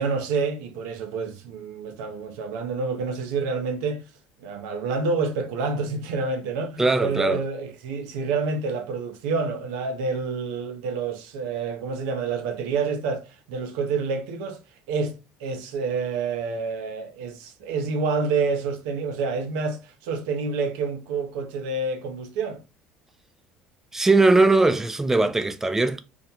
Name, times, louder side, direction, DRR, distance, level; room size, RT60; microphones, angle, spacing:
voice 1, 0.0-4.0 4.4-14.6 14.9-22.6, right 4 dB, 85° right, 0.5 m, -28 dB
voice 2, 6.8-7.4 23.9-26.0, right 3 dB, 10° right, 0.3 m, -20 dB
2.3 x 2.1 x 2.7 m
supercardioid pair, 90°, 4 cm